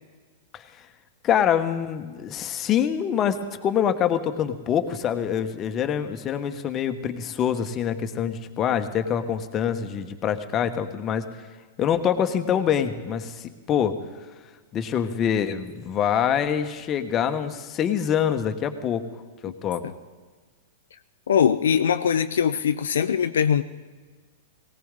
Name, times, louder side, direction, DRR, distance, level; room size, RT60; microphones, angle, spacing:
voice 1, 1.2-11.3 11.8-14.0 14.7-19.0 19.4-19.8, left 8 dB, 30° left, 8 dB, 1.2 m, -25 dB
voice 2, 21.3-23.6, left 8 dB, 75° left, 9 dB, 0.5 m, -21 dB
19.0 x 17.5 x 3.8 m, 1.4 s
hypercardioid pair, 110°, 0 cm